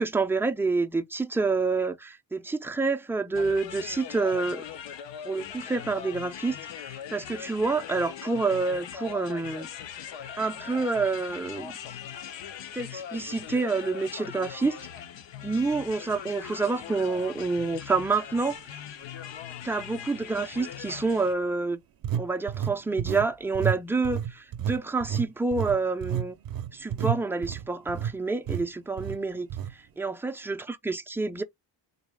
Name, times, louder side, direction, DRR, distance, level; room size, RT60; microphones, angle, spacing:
voice 1, 0.0-4.6 5.2-6.6 6.9-9.7 10.4-11.7 12.7-14.8 15.4-18.6 19.6-21.8 22.2-26.4 26.7-29.5 30.0-31.4, right 3 dB, 5° right, 0.4 m, -28 dB
sound 1, 3.3-21.3, left 9 dB, 75° left, 0.8 m, -40 dB
sound 2, 17.6-17.7 18.3-18.5 22.0-23.3 23.5-23.8 24.0-28.1 28.5-28.6 29.0-29.2 29.5-29.7, right 9 dB, 50° right, 0.6 m, -30 dB
4.0 x 2.3 x 3.3 m
cardioid pair, 110°, 44 cm